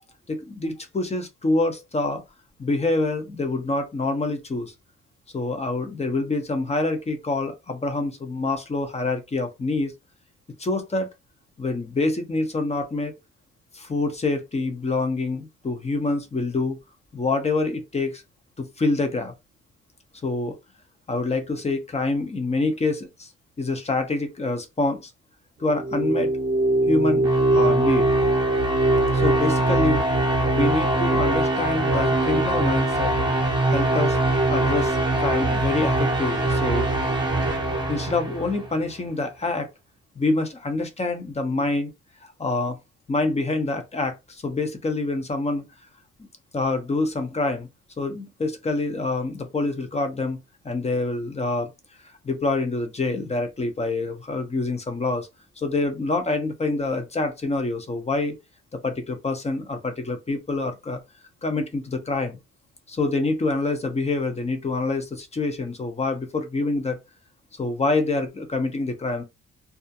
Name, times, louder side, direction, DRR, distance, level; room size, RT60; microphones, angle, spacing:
voice 1, 0.3-2.2 2.6-4.7 5.3-9.9 10.6-11.1 11.6-13.1 13.7-16.8 17.1-18.2 18.6-19.3 20.2-20.6 21.1-23.3 23.6-25.1 25.6-26.3 26.9-27.3 27.5-28.1 29.1-30.0 30.5-33.1 33.7-34.2 34.5-36.9 37.9-39.7 40.2-41.9 42.4-42.8 43.1-45.6 46.5-47.7 48.0-50.4 50.6-51.7 52.2-55.3 55.6-58.4 58.7-61.0 61.4-62.4 62.9-67.0 67.5-69.2, left 2 dB, 20° left, 0.7 m, -26 dB
sound 1, 25.7-38.8, right 2 dB, 15° right, 0.9 m, -22 dB
2.3 x 2.1 x 2.7 m
cardioid pair, 90°, 30 cm